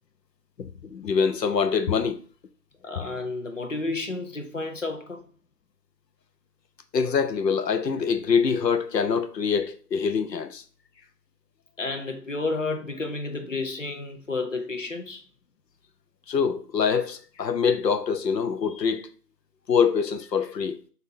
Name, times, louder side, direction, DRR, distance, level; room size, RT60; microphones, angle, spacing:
voice 1, 0.6-2.2 6.9-10.6 16.3-19.1 19.7-20.8, left 6 dB, 90° left, 0.7 m, -24 dB
voice 2, 2.8-5.3 11.8-15.2, left 3 dB, 50° left, 0.7 m, -31 dB
4.0 x 2.7 x 2.6 m
figure-of-eight pair, 175°, 48 cm